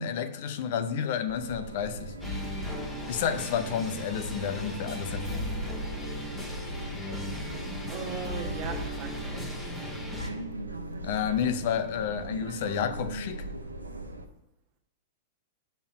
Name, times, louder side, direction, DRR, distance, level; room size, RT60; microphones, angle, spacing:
voice 1, 0.0-2.1 3.1-5.5 11.0-13.5, left 8 dB, 50° left, 0.6 m, -30 dB
sound 1, 1.3-14.3, right 1 dB, 85° right, 0.9 m, -39 dB
sound 2, 2.2-10.3, left 1 dB, 10° left, 1.4 m, -37 dB
voice 2, 7.9-9.6, right 7 dB, 40° right, 1.5 m, -39 dB
6.9 x 5.7 x 5.4 m
figure-of-eight pair, 100°, 0 cm